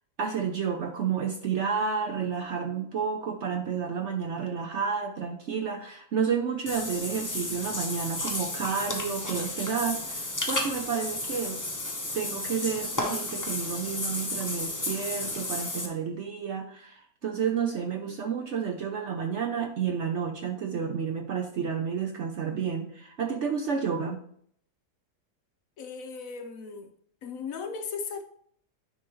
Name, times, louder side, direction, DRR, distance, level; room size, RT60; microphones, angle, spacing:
voice 1, 0.2-11.6 12.1-24.2, right 6 dB, 60° right, 4 dB, 0.8 m, -30 dB
Water / Bathtub (filling or washing), 6.7-15.9, left 2 dB, 20° left, 0.6 m, -33 dB
voice 2, 25.8-26.9 27.2-28.2, left 5 dB, 65° left, 6 dB, 1.0 m, -37 dB
9.8 x 4.7 x 3.0 m, 0.63 s
omnidirectional pair, 1.7 m